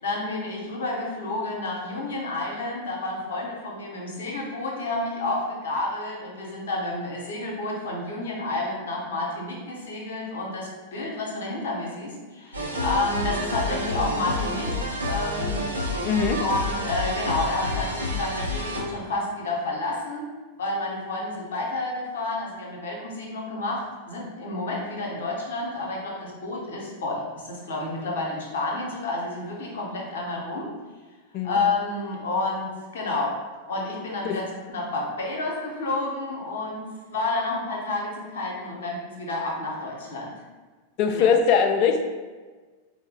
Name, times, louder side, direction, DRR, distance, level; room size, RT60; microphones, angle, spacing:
voice 1, 0.0-15.6 16.4-20.3 20.6-30.7 31.4-33.4 33.7-40.3 41.1-41.2, left 2 dB, 60° left, -2 dB, 0.8 m, -30 dB
sound 1, 12.5-18.8, left 1 dB, 85° right, 0.7 m, -29 dB
voice 2, 16.0-16.4 31.3-31.6 34.3-34.4 41.0-42.0, left 6 dB, 45° left, 5 dB, 0.4 m, -21 dB
4.0 x 2.0 x 3.6 m, 1.3 s
figure-of-eight pair, 90°, 0 cm